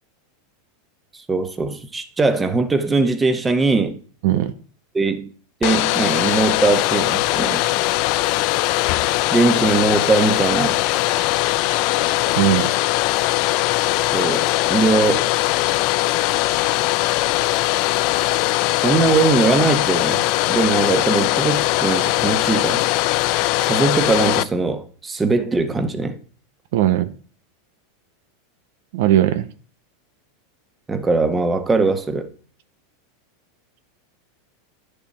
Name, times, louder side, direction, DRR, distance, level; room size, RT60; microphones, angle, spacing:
voice 1, 1.3-4.0 4.3-4.4 4.9-5.3 5.6-7.6 9.3-10.7 14.1-15.3 18.8-20.2 20.5-22.8 23.6-26.2 30.9-32.3, right 3 dB, 15° right, 1.3 m, -20 dB
Domestic sounds home sounds, 5.6-24.4, left 19 dB, 55° left, 0.5 m, -20 dB
voice 2, 12.4-12.7 26.7-27.1 28.9-29.5, right 13 dB, 70° right, 0.8 m, -18 dB
10.5 x 6.8 x 4.3 m
hypercardioid pair, 110°, 0 cm